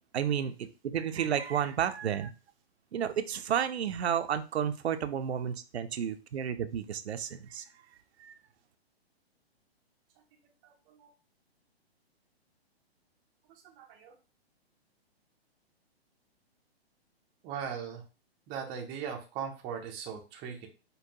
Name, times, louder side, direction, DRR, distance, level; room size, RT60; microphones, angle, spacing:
voice 1, 0.1-2.3 2.9-7.6 8.2-8.3, right 9 dB, 80° right, 10 dB, 0.5 m, -31 dB
voice 2, 13.8-14.1 17.4-18.0 18.5-20.7, right 7 dB, 15° right, 2 dB, 0.4 m, -39 dB
5.2 x 2.2 x 2.7 m, 0.32 s
hypercardioid pair, 130°, 32 cm